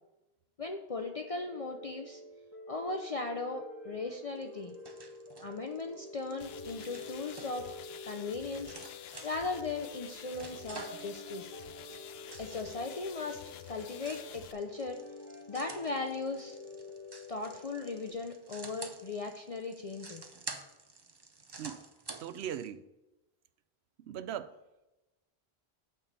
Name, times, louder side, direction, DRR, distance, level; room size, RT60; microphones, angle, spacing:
voice 1, 0.6-2.2 2.7-4.7 5.4-7.7 8.0-8.8 9.2-11.6 12.4-13.4 13.7-15.0 15.5-16.6 17.3-20.3, left 3 dB, 40° left, 0.6 m, -38 dB
sound 1, 1.0-18.1, left 2 dB, 15° left, 1.8 m, -48 dB
sound 2, 4.4-22.7, right 3 dB, 30° right, 0.6 m, -50 dB
sound 3, 6.4-14.5, left 10 dB, 75° left, 0.8 m, -50 dB
voice 2, 22.2-22.8 24.0-24.5, right 10 dB, 80° right, 0.8 m, -39 dB
8.8 x 4.6 x 6.7 m
omnidirectional pair, 1.1 m